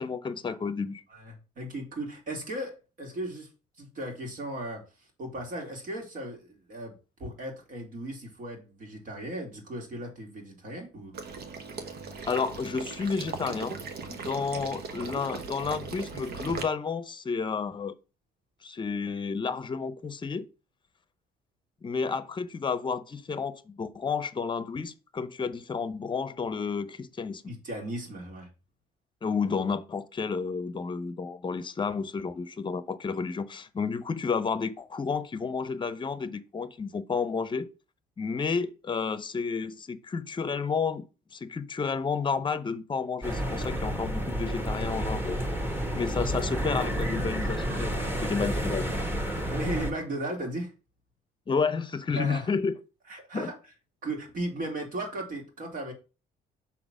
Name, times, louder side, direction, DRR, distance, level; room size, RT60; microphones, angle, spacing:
voice 1, 0.0-1.0 12.3-13.8 14.1-17.9 18.6-20.5 21.8-27.4 29.2-37.7 38.2-41.0 41.3-45.4 45.9-48.9 51.5-52.7 53.3-53.5, left 5 dB, 30° left, 0.8 m, -31 dB
voice 2, 1.1-3.5 3.8-11.4 27.5-28.5 49.5-50.7 52.1-52.5 53.1-53.6 54.0-55.9, right 1 dB, 55° right, 2.8 m, -36 dB
Water / Liquid, 11.1-16.6, right 4 dB, 70° right, 1.2 m, -38 dB
sound 1, 43.2-49.9, equal, 10° right, 1.5 m, -30 dB
5.8 x 4.0 x 6.1 m
cardioid pair, 95°, 17 cm